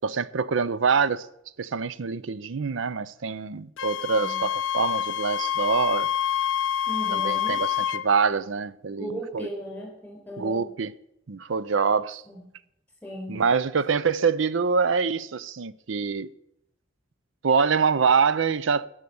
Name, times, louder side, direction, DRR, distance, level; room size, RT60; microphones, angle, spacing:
voice 1, 0.0-1.3 1.6-6.1 7.1-9.5 10.4-10.9 11.3-12.2 13.3-16.3 17.4-18.9, right 5 dB, 80° right, 0.6 m, -25 dB
Wind instrument woodwind instrument, 3.8-8.1, left 10 dB, 80° left, 0.6 m, -27 dB
voice 2, 6.9-7.6 9.0-10.7 12.3-12.4 13.0-13.4, equal, 5° left, 4.7 m, -37 dB
17.5 x 6.4 x 7.0 m
head